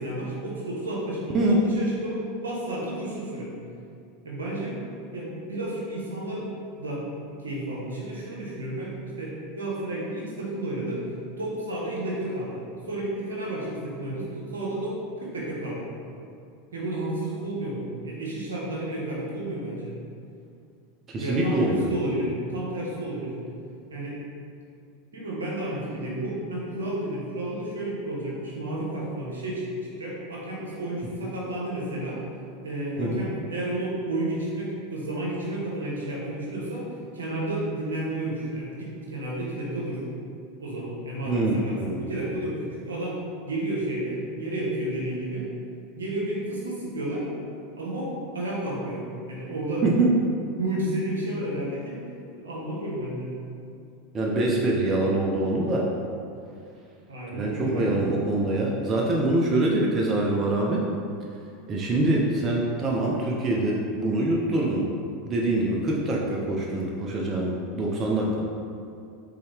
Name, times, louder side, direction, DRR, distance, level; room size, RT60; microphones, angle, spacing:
voice 1, 0.0-3.5 4.2-4.8 5.1-11.0 11.4-15.9 16.7-20.0 21.2-23.4 23.9-24.2 25.1-32.2 32.6-36.9 37.1-40.0 40.6-45.5 46.0-47.3 47.7-49.8 50.6-52.0 52.3-53.3 57.1-57.9, right 1 dB, 80° right, -5 dB, 1.1 m, -31 dB
voice 2, 21.1-21.9 33.0-33.2 41.3-42.0 49.8-50.2 54.1-55.9 57.3-60.9 61.7-64.9 65.3-68.4, right 2 dB, 35° right, -2 dB, 0.6 m, -24 dB
4.0 x 3.8 x 3.4 m, 2.5 s
hypercardioid pair, 85°, 0 cm